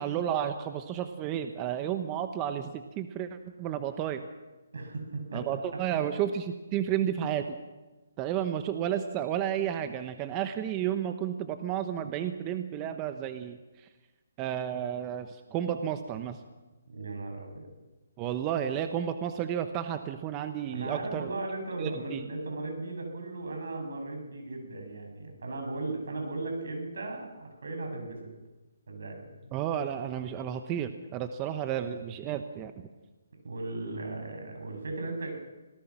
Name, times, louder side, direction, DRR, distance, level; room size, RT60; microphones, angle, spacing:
voice 1, 0.0-3.3 3.6-4.2 5.3-7.5 8.2-13.6 14.4-16.4 18.2-21.3 21.8-22.2 29.5-32.7, right 10 dB, 20° right, 9 dB, 1.0 m, -32 dB
voice 2, 4.7-5.4 16.9-17.7 20.7-28.3 28.9-29.3 33.4-35.3, right 2 dB, 75° right, 3 dB, 7.7 m, -37 dB
25.5 x 18.0 x 6.1 m, 1.2 s
hypercardioid pair, 160°, 0 cm